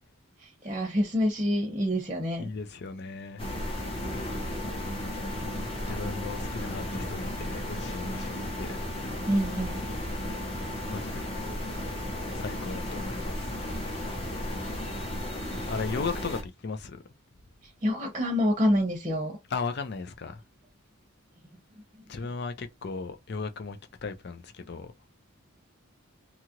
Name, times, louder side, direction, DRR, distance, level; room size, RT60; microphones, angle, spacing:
voice 1, 0.6-2.5 9.3-9.8 17.8-19.4, equal, 25° right, 0.8 m, -26 dB
voice 2, 2.4-3.4 5.8-8.3 8.6-8.8 10.9-11.3 12.3-13.6 15.7-17.0 19.5-20.4 22.1-24.9, left 4 dB, 50° left, 0.5 m, -36 dB
sound 1, 3.4-16.4, left 1 dB, 25° left, 0.8 m, -34 dB
2.8 x 2.4 x 2.9 m
head